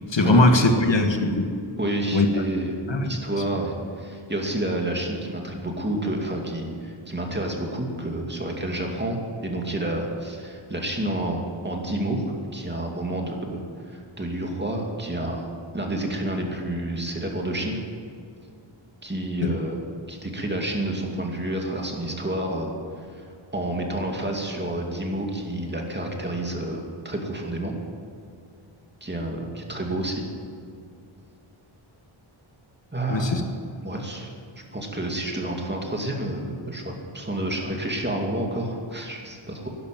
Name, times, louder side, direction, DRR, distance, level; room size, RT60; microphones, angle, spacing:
voice 1, 0.1-1.5 2.1-2.3 2.9-3.1 19.4-19.5 33.1-33.4, left 2 dB, 60° left, 5 dB, 1.6 m, -20 dB
voice 2, 1.8-2.7 3.0-12.2 12.5-15.5 15.7-17.8 19.0-19.8 20.1-22.7 23.1-23.2 23.5-27.7 29.0-30.2 32.9-33.4 33.8-34.3 34.7-39.7, right 1 dB, 20° right, 1 dB, 2.5 m, -29 dB
11.5 x 11.5 x 9.3 m, 2.3 s
wide cardioid pair, 90°, 49 cm